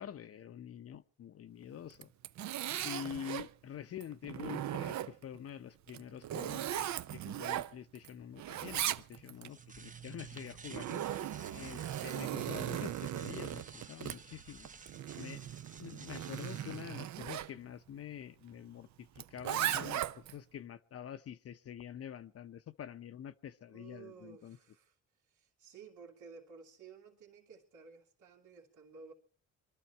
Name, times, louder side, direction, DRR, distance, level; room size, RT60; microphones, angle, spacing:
voice 1, 0.0-2.1 2.8-11.0 11.5-14.7 15.2-15.5 15.8-24.6, left 9 dB, 50° left, 0.7 m, -46 dB
Zipper (clothing), 1.9-3.5 4.0-5.4 5.9-8.1 8.4-9.5 10.4-17.5 19.2-20.4, right 12 dB, 65° right, 0.7 m, -38 dB
sound 1, 9.3-16.8, right 5 dB, 25° right, 0.9 m, -53 dB
voice 2, 23.7-29.1, right 5 dB, 80° right, 2.5 m, -55 dB
22.5 x 13.0 x 4.5 m
cardioid pair, 90°, 30 cm